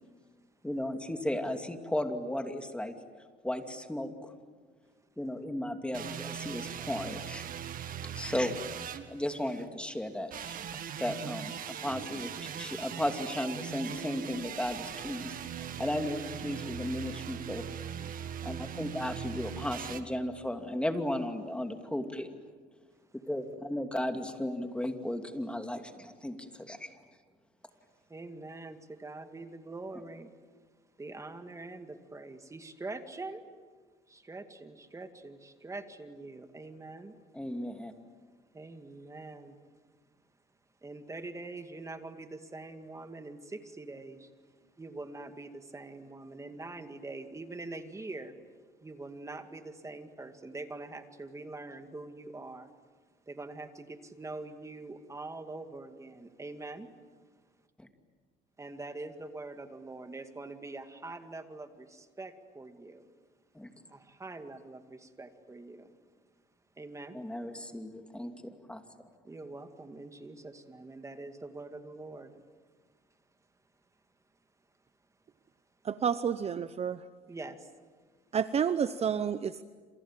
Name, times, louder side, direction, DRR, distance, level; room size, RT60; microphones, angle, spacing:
voice 1, 0.6-2.9 3.4-4.3 5.2-7.4 8.2-8.6 9.1-10.6 11.0-15.4 15.8-17.6 18.4-22.3 23.3-26.9 37.3-37.9 57.8-57.9 63.5-63.7 67.1-68.8, left 1 dB, 5° left, 6 dB, 2.6 m, -35 dB
sound 1, 5.9-9.7 10.3-20.0, right 9 dB, 55° right, 1.8 m, -40 dB
voice 2, 28.1-30.3 31.0-33.5 34.1-37.2 38.5-39.6 40.8-44.3 44.8-48.4 48.8-52.7 53.3-56.9 58.6-63.1 63.9-65.9 66.8-67.2 69.2-72.5 77.3-77.7, right 2 dB, 20° right, 7 dB, 2.3 m, -44 dB
voice 3, 75.8-77.1 78.3-79.6, right 7 dB, 40° right, 13 dB, 0.8 m, -30 dB
28.0 x 28.0 x 7.6 m, 1.5 s
cardioid pair, 110°, 17 cm